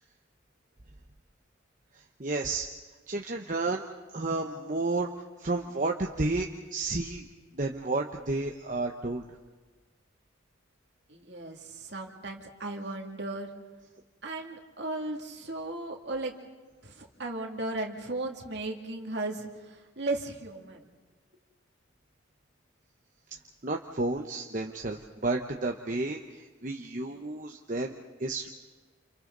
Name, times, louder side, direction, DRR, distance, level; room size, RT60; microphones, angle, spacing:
voice 1, 1.9-2.7 3.1-3.9 4.1-5.1 5.4-7.2 7.5-9.3 23.6-28.5, right 2 dB, 40° right, 2 dB, 1.0 m, -31 dB
voice 2, 11.1-13.5 14.2-16.3 16.8-20.9, right 2 dB, 60° right, 1 dB, 2.6 m, -36 dB
29.5 x 29.5 x 4.0 m, 1.3 s
head